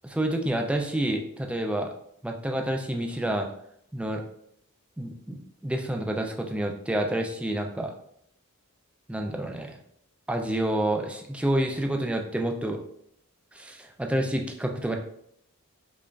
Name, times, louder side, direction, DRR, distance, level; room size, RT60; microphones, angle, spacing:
voice 1, 0.0-1.9 2.2-3.5 3.9-4.2 5.0-7.9 9.1-9.8 10.3-12.8 13.5-15.0, right 1 dB, 5° right, 3 dB, 0.3 m, -28 dB
5.0 x 2.4 x 2.3 m, 0.69 s
head